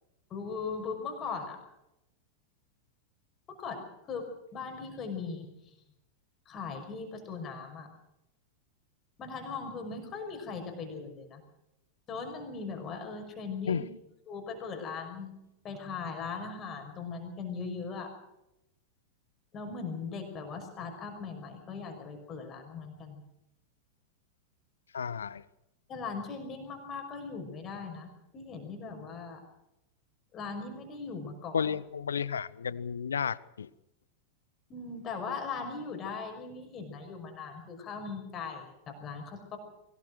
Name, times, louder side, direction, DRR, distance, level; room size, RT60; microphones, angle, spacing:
voice 1, 0.3-1.6 3.5-5.7 6.5-7.9 9.2-11.4 12.1-13.8 14.3-15.3 15.6-18.1 19.5-23.2 25.9-29.4 30.3-31.7 34.7-39.6, left 5 dB, 30° left, 5.7 m, -39 dB
voice 2, 24.9-25.4 31.5-33.7, left 7 dB, 70° left, 0.8 m, -32 dB
23.5 x 19.0 x 6.2 m
figure-of-eight pair, 90°, 0 cm